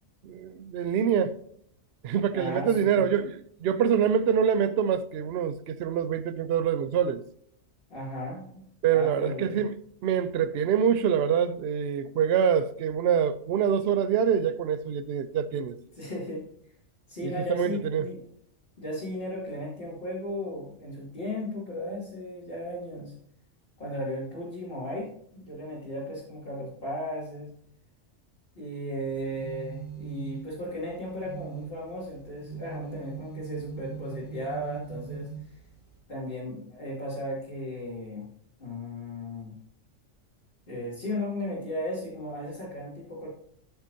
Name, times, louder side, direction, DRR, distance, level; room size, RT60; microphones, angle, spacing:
voice 1, 0.2-1.4 2.0-7.2 8.8-9.8 10.0-15.8 17.2-18.1, right 8 dB, 60° right, 0.8 m, -25 dB
voice 2, 2.3-3.1 7.9-8.6 8.9-9.6 15.9-16.4 17.1-18.2 18.8-23.1 23.8-27.5 28.5-35.6 36.1-38.3 38.6-39.5 40.7-43.3, left 1 dB, 45° left, 3.0 m, -35 dB
Phone Vibrating, 29.1-36.0, right 7 dB, 20° left, 2.3 m, -42 dB
13.5 x 6.2 x 2.8 m
omnidirectional pair, 1.3 m